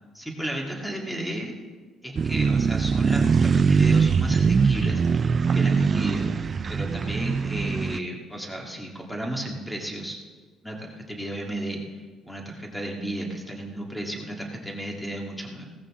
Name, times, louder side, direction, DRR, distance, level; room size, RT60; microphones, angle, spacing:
voice 1, 0.1-1.5 2.0-10.2 10.6-11.8 12.2-15.6, right 1 dB, 5° left, 0 dB, 2.0 m, -33 dB
sound 1, 2.2-8.0, right 5 dB, 30° right, 0.3 m, -22 dB
16.5 x 14.0 x 3.7 m, 1.4 s
cardioid pair, 150°, 0 cm